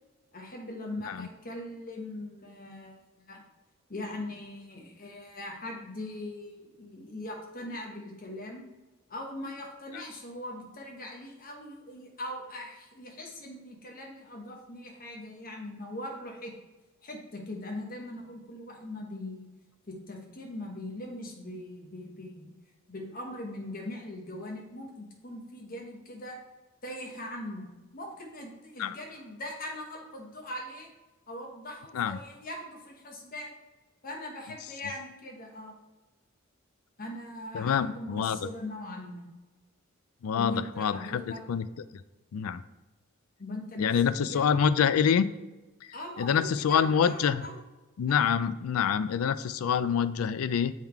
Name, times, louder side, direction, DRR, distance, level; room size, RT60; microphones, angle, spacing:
voice 1, 0.3-3.0 3.3-3.4 3.9-8.6 9.1-16.5 17.0-19.5 19.9-22.5 22.9-26.4 26.8-27.7 27.9-30.9 31.3-33.5 34.0-35.7 37.0-39.2 40.3-41.4 43.4-44.6 45.9-47.6 48.1-48.2, left 1 dB, 45° left, 0 dB, 1.2 m, -40 dB
voice 2, 37.5-38.4 40.2-41.2 41.5-41.7 42.3-42.6 43.8-45.3 46.2-47.5 48.0-50.7, left 7 dB, 90° left, 15 dB, 0.4 m, -26 dB
7.2 x 3.7 x 4.6 m, 1.1 s
head